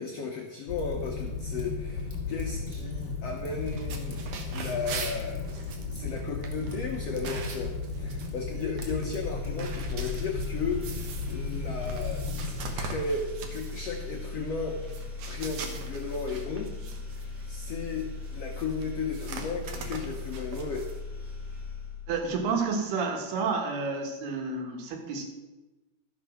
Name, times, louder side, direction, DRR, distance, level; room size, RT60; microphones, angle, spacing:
voice 1, 0.0-5.5 5.9-14.8 15.2-16.7 17.1-20.9, left 4 dB, 85° left, 1 dB, 1.4 m, -35 dB
Fire, 0.7-12.8, left 4 dB, 10° right, 1.6 m, -35 dB
sound 1, 3.5-21.0, right 4 dB, 65° right, 2.3 m, -43 dB
sound 2, 9.2-22.6, left 3 dB, 35° right, 3.8 m, -39 dB
voice 2, 22.1-25.2, right 4 dB, 85° right, 3 dB, 3.5 m, -30 dB
12.5 x 6.1 x 6.3 m, 1.1 s
omnidirectional pair, 4.4 m